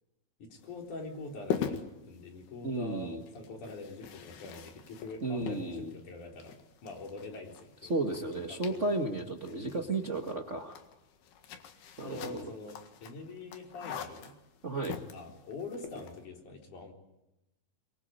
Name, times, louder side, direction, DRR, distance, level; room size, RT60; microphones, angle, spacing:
voice 1, 0.4-8.0 8.5-9.0 9.8-9.9 12.0-14.4 15.1-16.9, left 3 dB, 55° left, 2 dB, 5.3 m, -44 dB
sound 1, 0.6-16.2, left 8 dB, 85° left, 3.8 m, -43 dB
voice 2, 2.6-3.2 5.2-5.9 7.9-10.8 12.0-12.5 14.6-15.0, right 2 dB, 65° right, 3 dB, 0.7 m, -33 dB
23.5 x 23.5 x 9.0 m, 0.93 s
omnidirectional pair, 4.4 m